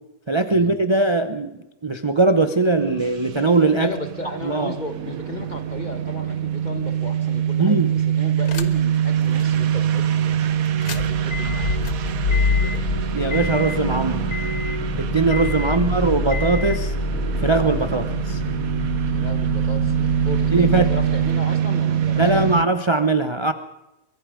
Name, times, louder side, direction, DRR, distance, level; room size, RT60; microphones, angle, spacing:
voice 1, 0.3-1.5 1.8-3.9 4.4-4.8 7.6-7.9 13.1-14.3 15.0-16.9 17.4-18.4 20.5-20.9 22.2-23.5, right 3 dB, 25° right, 9 dB, 0.7 m, -20 dB
sound 1, 2.8-22.6, right 9 dB, 65° right, 1.3 m, -24 dB
voice 2, 3.8-12.9 15.6-15.9 19.1-22.6, left 2 dB, 30° left, 8 dB, 1.5 m, -35 dB
sound 2, 8.5-9.0 9.4-9.5 10.7-21.3, left 3 dB, 65° left, 1.7 m, -26 dB
23.5 x 22.5 x 5.1 m, 0.93 s
omnidirectional pair, 1.7 m